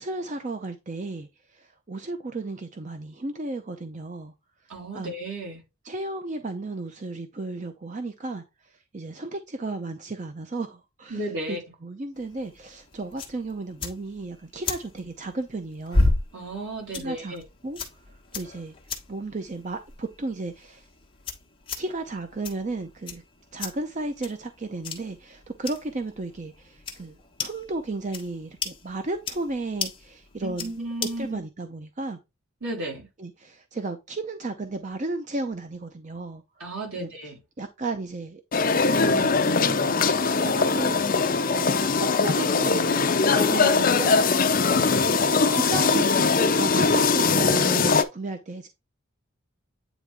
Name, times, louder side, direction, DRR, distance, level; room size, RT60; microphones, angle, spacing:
voice 1, 0.0-4.3 4.9-5.1 5.8-16.1 16.9-17.4 17.6-18.7 19.1-20.9 21.8-23.2 23.5-30.7 31.0-32.2 33.2-36.7 36.9-37.1 37.6-43.2 43.5-45.0 45.5-48.7, right 2 dB, 35° right, 0.5 m, -34 dB
voice 2, 4.7-5.6 11.1-11.6 16.3-17.4 30.4-31.4 32.6-33.1 36.6-37.4 43.3-43.6, right 1 dB, 75° right, 3.1 m, -34 dB
sound 1, 12.1-31.3, left 2 dB, 25° left, 1.3 m, -34 dB
sound 2, 38.5-48.0, left 4 dB, 40° left, 0.5 m, -21 dB
9.1 x 3.5 x 3.5 m
head